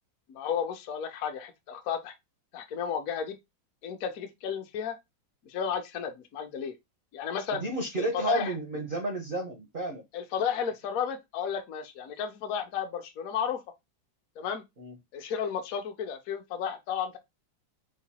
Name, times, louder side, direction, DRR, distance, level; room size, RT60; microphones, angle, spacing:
voice 1, 0.3-2.1 2.5-3.4 3.8-5.0 5.5-6.7 7.1-7.6 8.0-8.5 10.1-13.6 14.4-14.6 15.1-17.2, left 7 dB, 65° left, 0.9 m, -33 dB
voice 2, 7.6-10.0 14.8-14.9, right 2 dB, 65° right, 0.5 m, -32 dB
4.9 x 2.3 x 4.1 m
omnidirectional pair, 2.2 m